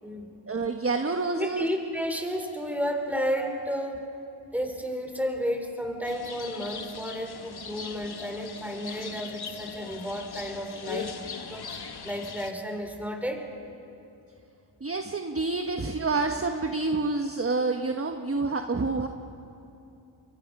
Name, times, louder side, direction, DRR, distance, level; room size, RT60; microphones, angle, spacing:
voice 1, 0.5-1.7 14.8-19.1, right 3 dB, 25° right, 5 dB, 1.3 m, -28 dB
voice 2, 1.3-4.1 4.5-11.1 11.5-13.5, equal, 5° right, 4 dB, 4.1 m, -32 dB
sound 1, 6.0-12.5, left 6 dB, 50° left, 1.6 m, -40 dB
29.5 x 23.0 x 5.5 m, 2.8 s
cardioid pair, 60°, 49 cm